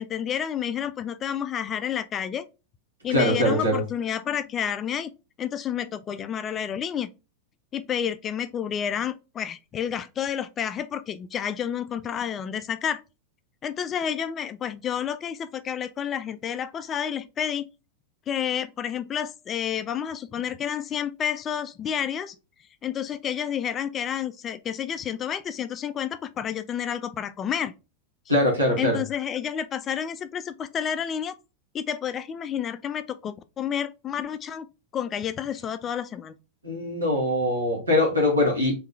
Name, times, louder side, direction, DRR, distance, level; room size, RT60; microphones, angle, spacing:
voice 1, 0.0-2.5 3.0-5.1 5.4-7.1 7.7-13.0 13.6-17.7 18.3-22.4 22.8-27.7 28.8-31.3 31.7-34.7 34.9-36.3, left 9 dB, 25° left, 0.3 m, -30 dB
voice 2, 3.1-3.8 28.3-29.0 36.6-38.7, left 1 dB, 80° right, 2.0 m, -22 dB
3.7 x 3.2 x 3.1 m
figure-of-eight pair, 90°, 0 cm